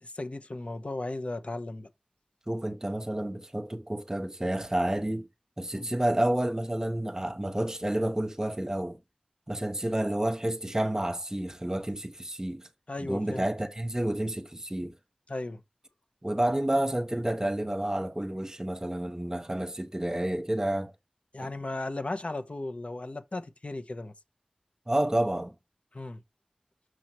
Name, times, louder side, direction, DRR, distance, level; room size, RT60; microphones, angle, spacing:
voice 1, 0.0-1.9 5.7-5.9 12.9-13.5 15.3-15.6 21.3-24.1 25.9-26.2, left 2 dB, 55° left, 0.9 m, -36 dB
voice 2, 2.5-5.3 5.6-9.0 9.5-12.7 13.0-15.0 16.2-20.9 24.9-25.5, right 1 dB, 25° right, 1.1 m, -30 dB
6.4 x 5.6 x 3.1 m
wide cardioid pair, 50°, 2 cm